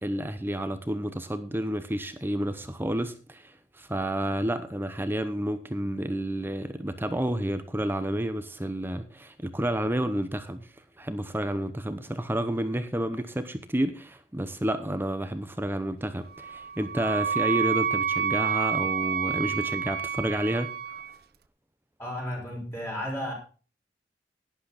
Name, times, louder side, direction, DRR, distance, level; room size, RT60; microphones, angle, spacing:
voice 1, 0.0-10.7 11.0-20.7, right 1 dB, 10° right, 10 dB, 0.8 m, -30 dB
Wind instrument woodwind instrument, 16.3-21.1, right 7 dB, 60° right, 0.6 m, -29 dB
voice 2, 22.0-23.3, left 1 dB, 15° left, -2 dB, 5.1 m, -33 dB
11.5 x 10.5 x 4.1 m, 0.37 s
head